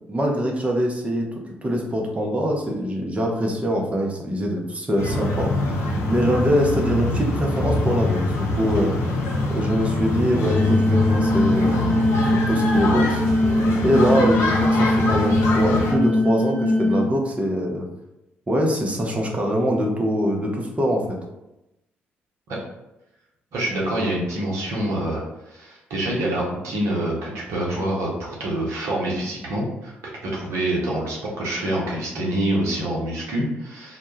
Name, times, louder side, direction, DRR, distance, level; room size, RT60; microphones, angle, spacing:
voice 1, 0.0-8.9 9.5-11.9 12.3-13.2 13.8-17.9 18.5-21.2, equal, 20° right, 0 dB, 0.6 m, -23 dB
sound 1, 5.0-15.9, left 2 dB, 55° left, 0.5 m, -24 dB
sound 2, 10.5-17.0, left 1 dB, 25° left, 0.9 m, -21 dB
voice 2, 23.5-29.9 30.2-34.0, right 1 dB, 60° right, -4 dB, 0.8 m, -26 dB
2.2 x 2.1 x 3.0 m, 0.92 s
figure-of-eight pair, 40°, 6 cm